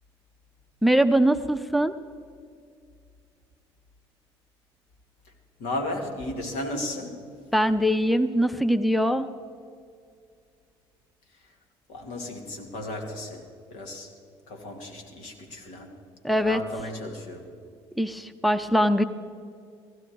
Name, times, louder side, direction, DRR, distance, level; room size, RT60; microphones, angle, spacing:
voice 1, 0.8-1.9 7.5-9.3 16.2-16.6 18.0-19.0, equal, ahead, 12 dB, 0.6 m, -22 dB
voice 2, 5.6-7.2 11.9-14.1 14.5-15.9 16.3-17.5, left 1 dB, 70° left, 3 dB, 2.4 m, -34 dB
16.5 x 15.5 x 4.6 m, 2.3 s
hypercardioid pair, 60°, 13 cm